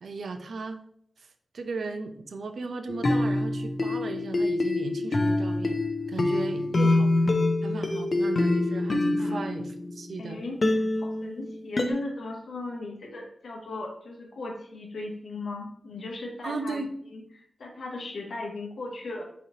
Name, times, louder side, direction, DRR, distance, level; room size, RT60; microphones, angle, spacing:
voice 1, 0.0-0.8 1.2-5.8 6.1-7.1 7.6-10.4 16.4-16.9, right 3 dB, 65° right, 7 dB, 0.4 m, -36 dB
sound 1, 2.9-10.2 10.6-11.9, left 2 dB, 35° left, 0.4 m, -25 dB
voice 2, 10.2-16.8 17.1-19.2, left 2 dB, 70° left, -2 dB, 0.7 m, -37 dB
3.9 x 2.8 x 3.0 m, 0.65 s
wide cardioid pair, 175°, 0 cm